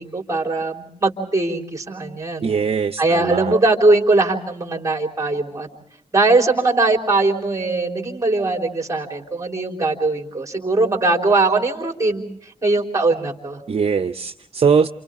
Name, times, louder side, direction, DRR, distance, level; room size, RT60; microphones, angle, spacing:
voice 1, 0.0-2.5 3.0-5.7 6.1-12.2 12.6-13.6, right 2 dB, 25° right, 2 dB, 3.9 m, -20 dB
voice 2, 2.4-3.5 13.7-14.9, right 6 dB, 50° right, 8 dB, 0.7 m, -20 dB
29.0 x 28.5 x 3.7 m, 0.76 s
wide cardioid pair, 110°, 12 cm